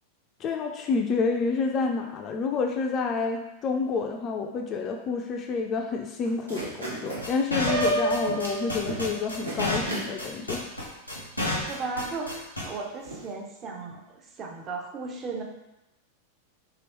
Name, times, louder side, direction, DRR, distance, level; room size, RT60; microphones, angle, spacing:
voice 1, 0.4-10.7, left 4 dB, 30° left, 3 dB, 0.3 m, -29 dB
sound 1, 6.3-7.3 7.9-8.0 8.3-8.6 8.9-9.2 9.5-10.1 10.7-10.8 11.1-11.9 12.6-12.7 13.0-13.3, right 2 dB, 80° right, 0.8 m, -37 dB
sound 2, 7.2-12.6, left 2 dB, 85° left, 0.8 m, -30 dB
Piano, 7.7-9.6, right 1 dB, 45° right, 1.0 m, -28 dB
voice 2, 11.7-15.4, right 4 dB, 30° right, 1 dB, 0.5 m, -36 dB
2.9 x 2.9 x 3.0 m, 0.92 s
figure-of-eight pair, 90°, 0 cm